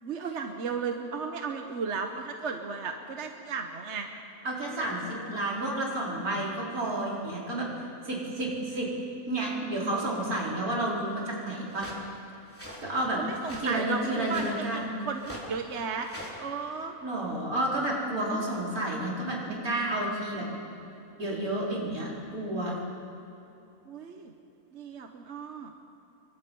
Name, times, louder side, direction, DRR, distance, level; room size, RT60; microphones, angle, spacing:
voice 1, 0.0-4.1 5.1-5.4 13.2-16.1 16.4-17.0 18.3-18.5 23.9-24.3 24.7-25.7, right 5 dB, 55° right, 4 dB, 1.4 m, -35 dB
voice 2, 4.4-7.7 8.0-8.9 9.3-11.9 12.8-13.2 13.6-14.9 17.0-20.5 21.2-22.8, right 1 dB, 80° right, -4 dB, 5.1 m, -31 dB
sound 1, 11.7-12.0 12.5-12.8 13.4-13.7 14.2-14.6 15.1-15.5 16.0-16.4, equal, 10° left, 3.8 m, -43 dB
28.5 x 24.0 x 5.5 m, 2.8 s
omnidirectional pair, 1.5 m